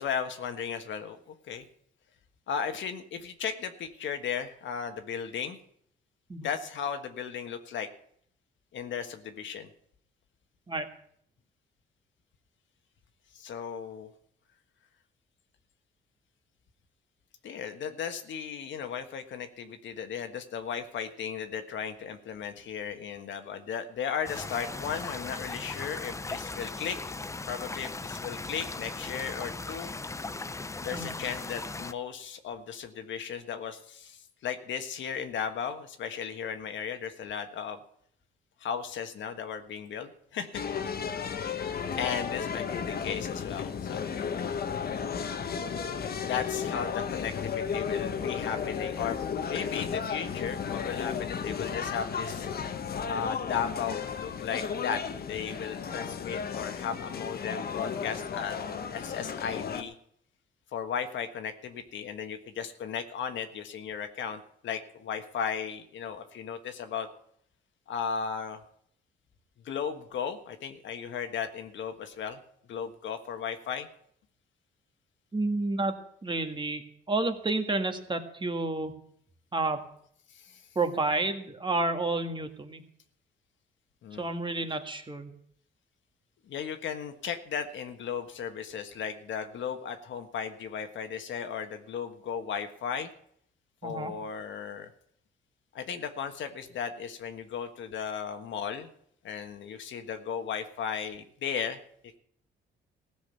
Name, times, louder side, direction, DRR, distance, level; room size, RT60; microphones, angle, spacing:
voice 1, 0.0-1.7 2.5-5.6 6.4-7.9 8.7-9.7 13.3-14.1 17.4-27.0 27.5-29.9 30.8-37.8 38.6-40.6 40.9-41.1 42.0-44.5 46.2-52.5 53.1-55.0 55.3-59.9 60.7-67.1 67.9-68.6 69.6-72.4 72.7-73.9 80.3-80.6 84.0-84.3 86.5-93.1 93.8-94.9 95.7-98.9 99.2-101.8, left 7 dB, 70° left, 7 dB, 1.5 m, -36 dB
sound 1, 24.2-31.9, left 3 dB, 15° left, 0.5 m, -38 dB
sound 2, 40.5-59.8, left 6 dB, 50° left, 1.3 m, -34 dB
voice 2, 75.3-78.9 79.5-79.9 80.8-82.8 84.2-85.3 93.8-94.2, right 2 dB, 25° right, 6 dB, 1.8 m, -30 dB
15.5 x 6.3 x 9.4 m, 0.66 s
cardioid pair, 90°, 20 cm